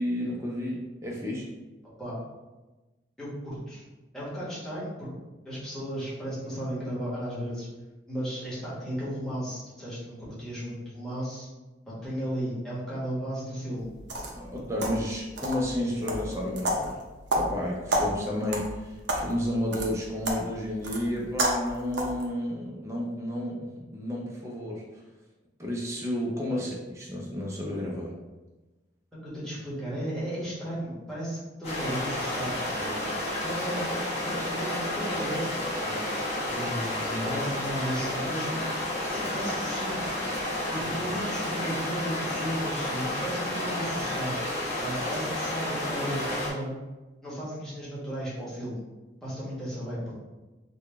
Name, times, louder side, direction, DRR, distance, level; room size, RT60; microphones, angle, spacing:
voice 1, 0.0-1.5 14.3-17.0 17.3-24.8 25.6-28.1, left 1 dB, 15° right, -3 dB, 0.5 m, -31 dB
voice 2, 3.2-3.8 4.1-5.1 5.4-7.7 8.1-11.5 11.9-13.9 26.5-26.6 29.2-33.0 33.4-34.0 34.2-38.6 39.1-40.1 40.7-46.7 47.2-48.8 49.2-50.1, equal, 5° left, -9 dB, 1.1 m, -35 dB
sound 1, 13.8-22.3, right 1 dB, 75° right, 0.6 m, -32 dB
sound 2, 31.6-46.5, left 1 dB, 35° left, 1.1 m, -31 dB
3.9 x 2.2 x 3.3 m, 1.1 s
head